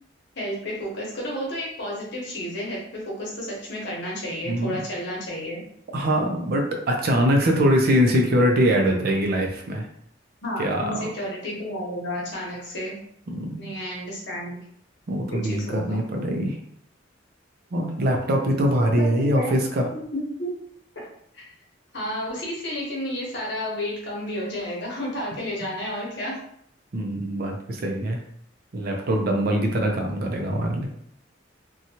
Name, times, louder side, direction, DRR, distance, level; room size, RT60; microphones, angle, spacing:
voice 1, 0.4-5.6 10.4-13.0 13.5-14.6 15.3-16.1 18.9-19.5 19.9-20.5 20.9-21.1 21.3-21.4 21.9-26.4, equal, 60° left, -4 dB, 1.0 m, -31 dB
voice 2, 4.4-4.8 5.9-9.9 10.6-10.8 13.3-13.6 15.1-16.6 17.7-19.9 26.9-28.2 28.7-30.9, equal, 55° right, 2 dB, 0.5 m, -23 dB
2.9 x 2.2 x 2.7 m, 0.69 s
head